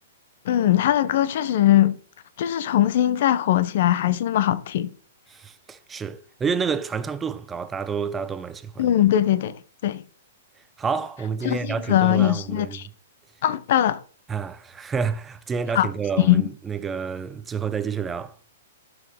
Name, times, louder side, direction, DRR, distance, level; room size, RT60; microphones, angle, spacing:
voice 1, 0.5-1.9 2.4-4.9 8.8-9.6 9.8-10.0 11.4-12.9 13.4-14.0 15.7-15.9 16.3-16.4, left 12 dB, 55° left, 0.7 m, -20 dB
voice 2, 5.3-8.9 10.8-12.9 14.3-18.3, right 6 dB, 15° right, 0.6 m, -29 dB
11.5 x 4.7 x 3.6 m
hypercardioid pair, 120°, 0 cm